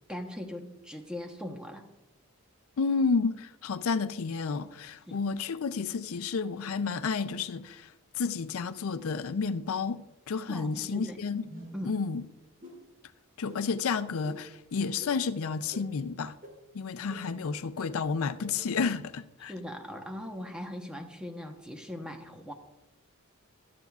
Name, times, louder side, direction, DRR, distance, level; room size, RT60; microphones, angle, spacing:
voice 1, 0.1-1.9 5.1-5.2 10.5-11.2 11.7-12.0 19.5-22.5, left 1 dB, 5° right, 1.0 m, -40 dB
voice 2, 2.8-11.5 11.8-12.2 13.4-16.4 16.7-19.5, left 5 dB, 70° left, 0.4 m, -31 dB
sound 1, 11.4-11.9 12.6-12.8 13.5-13.6 14.3-14.4 15.0-15.1 15.7-15.8 16.4-16.5 17.1-17.2 17.8-17.9 18.4-18.5, equal, 40° right, 2.9 m, -46 dB
16.5 x 11.5 x 2.4 m
head